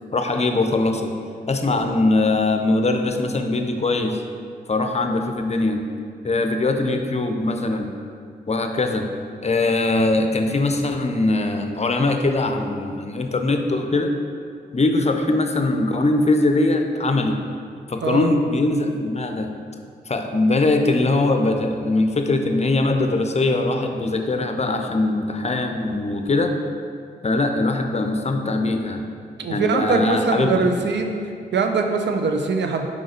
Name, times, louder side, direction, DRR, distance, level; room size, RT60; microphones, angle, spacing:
voice 1, 0.1-1.1 1.5-4.2 4.7-5.8 6.2-7.9 8.5-9.1 9.4-14.2 14.7-17.4 17.9-19.5 20.1-26.5 27.2-29.1 29.5-30.7, left 2 dB, 35° left, 5 dB, 0.6 m, -21 dB
voice 2, 18.0-18.3 29.4-31.1 31.5-32.9, right 4 dB, 70° right, 5 dB, 0.6 m, -22 dB
5.0 x 3.9 x 5.1 m, 2.3 s
supercardioid pair, 40°, 19 cm